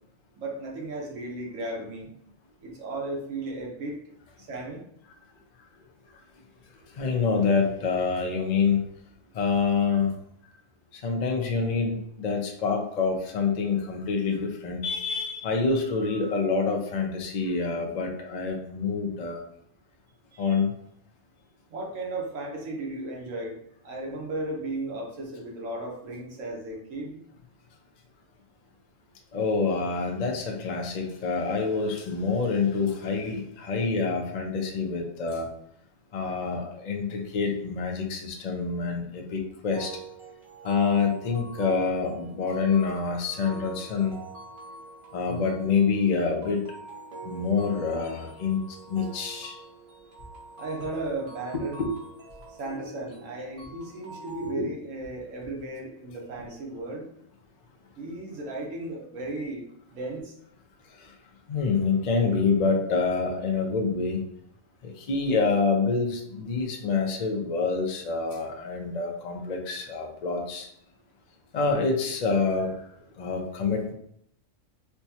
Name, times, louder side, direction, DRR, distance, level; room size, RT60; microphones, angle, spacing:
voice 1, 0.3-2.1 2.6-4.0 4.4-4.8 20.3-20.6 21.7-23.6 23.8-27.2 50.6-51.8 52.5-57.1 58.0-60.3, right 2 dB, 80° right, -1 dB, 1.3 m, -35 dB
voice 2, 7.0-8.8 9.4-10.1 11.0-19.4 20.4-20.7 29.3-35.5 36.1-39.9 40.6-44.2 45.1-46.6 47.2-48.6 48.9-49.6 51.5-51.9 61.5-64.2 64.8-70.7 71.5-72.7 73.2-73.9, left 4 dB, 50° left, 1 dB, 0.5 m, -26 dB
sound 1, 39.7-54.5, right 2 dB, 50° right, 0.9 m, -44 dB
4.4 x 2.2 x 2.8 m, 0.71 s
omnidirectional pair, 1.3 m